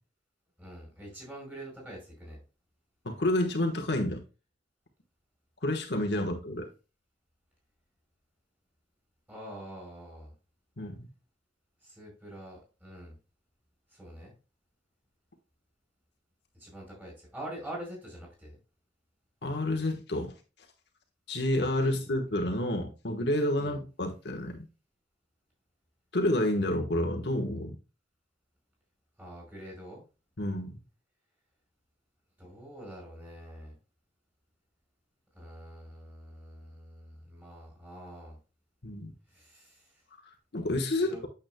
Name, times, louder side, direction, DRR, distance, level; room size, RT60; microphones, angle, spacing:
voice 1, 0.6-2.4 6.1-6.2 9.3-10.3 11.8-13.2 13.9-14.3 16.6-18.6 21.8-21.9 23.6-23.8 29.2-30.0 32.4-33.7 35.3-38.4 39.3-40.0 41.1-41.2, right 1 dB, 10° right, 4.8 m, -45 dB
voice 2, 3.0-4.2 5.6-6.7 10.8-11.1 19.4-20.3 21.3-24.6 26.1-27.8 30.4-30.8 38.8-39.1 40.5-41.1, left 1 dB, 60° left, 1.3 m, -29 dB
9.1 x 7.4 x 2.2 m
head